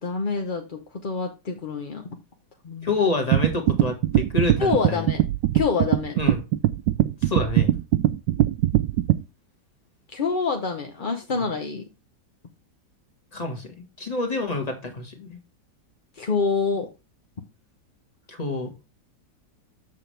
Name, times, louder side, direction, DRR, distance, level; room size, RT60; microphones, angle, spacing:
voice 1, 0.0-2.0 2.6-3.0 4.6-5.2 5.5-6.2 10.1-11.8 16.2-16.9, left 4 dB, 40° left, 0.8 m, -26 dB
voice 2, 2.8-5.0 6.2-6.4 7.2-7.7 11.0-11.2 13.3-15.4 18.3-18.7, left 3 dB, 25° left, 1.7 m, -28 dB
sound 1, 3.3-9.2, right 13 dB, 80° right, 1.2 m, -21 dB
7.3 x 6.7 x 3.3 m
omnidirectional pair, 1.9 m